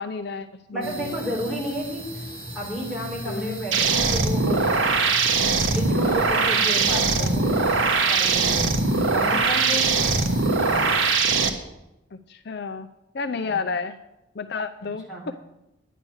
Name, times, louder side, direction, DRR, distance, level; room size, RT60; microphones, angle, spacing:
voice 1, 0.0-1.1 3.3-3.6 6.9-7.3 12.1-12.9 13.1-14.0 14.4-15.3, left 4 dB, 55° left, 9 dB, 0.5 m, -31 dB
voice 2, 0.7-2.0 2.5-4.7 5.7-7.6 8.1-8.8 9.1-9.9 13.4-13.6 15.1-15.2, equal, 5° right, -4 dB, 4.0 m, -31 dB
sound 1, 0.8-11.2, equal, 25° right, 2.6 m, -37 dB
sound 2, 3.7-11.5, right 4 dB, 70° right, 1.3 m, -21 dB
11.0 x 10.0 x 6.3 m, 0.91 s
head